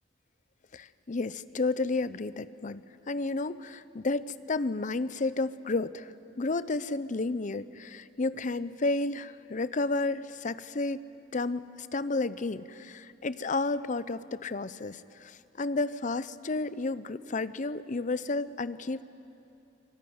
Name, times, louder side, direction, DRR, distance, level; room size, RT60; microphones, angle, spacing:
voice 1, 0.7-11.0 11.3-19.0, left 3 dB, 45° left, 15 dB, 0.7 m, -32 dB
24.5 x 22.5 x 9.5 m, 2.8 s
head